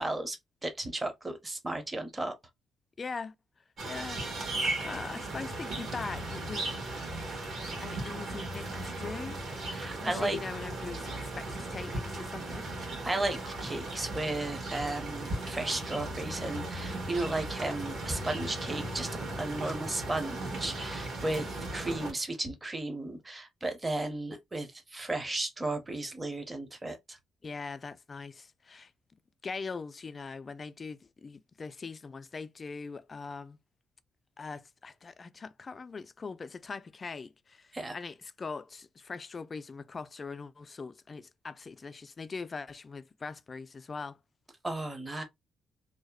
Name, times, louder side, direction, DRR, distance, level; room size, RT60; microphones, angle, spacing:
voice 1, 0.0-2.3 9.7-10.4 12.8-19.1 19.4-27.2 37.7-37.9 44.6-45.2, right 2 dB, 20° right, 0.7 m, -34 dB
voice 2, 3.0-3.3 3.8-7.0 7.8-9.4 9.9-12.7 27.4-28.9 29.4-33.6 34.4-44.2, left 4 dB, 35° left, 0.3 m, -41 dB
sound 1, 3.8-22.1, right 2 dB, 60° right, 1.4 m, -37 dB
2.7 x 2.0 x 2.2 m
cardioid pair, 90°, 0 cm